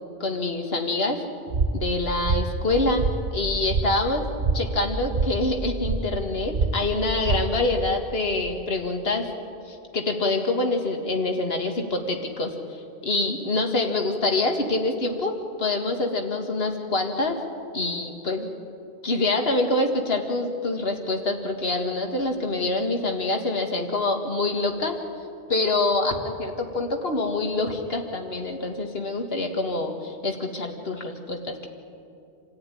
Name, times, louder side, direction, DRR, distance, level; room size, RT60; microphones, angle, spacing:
voice 1, 0.2-1.2 1.7-3.0 3.3-4.3 4.5-9.3 9.7-17.4 17.7-18.5 19.0-25.0 25.5-31.7, left 2 dB, 65° left, 3 dB, 2.2 m, -26 dB
sound 1, 1.5-7.9, right 3 dB, 45° right, 1.2 m, -27 dB
27.5 x 14.5 x 9.9 m, 2.6 s
omnidirectional pair, 1.1 m